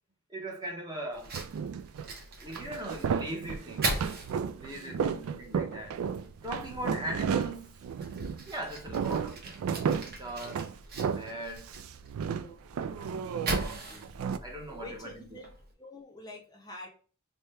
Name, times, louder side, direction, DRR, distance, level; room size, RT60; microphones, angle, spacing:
voice 1, 0.3-1.3 2.4-3.9 4.5-6.0 6.4-7.8 8.5-9.6 10.0-10.7 11.1-11.7 12.9-14.1 14.4-15.1, right 1 dB, 20° right, 0.7 m, -40 dB
Fire, 1.1-15.7, right 2 dB, 45° right, 1.0 m, -41 dB
sound 1, 1.3-2.1 2.5-8.5 8.8-11.4 11.7-14.4, right 7 dB, 70° right, 0.3 m, -33 dB
voice 2, 4.7-5.3 12.4-12.6 14.7-15.5 15.8-16.9, left 2 dB, 20° left, 0.6 m, -47 dB
3.4 x 2.2 x 4.1 m
head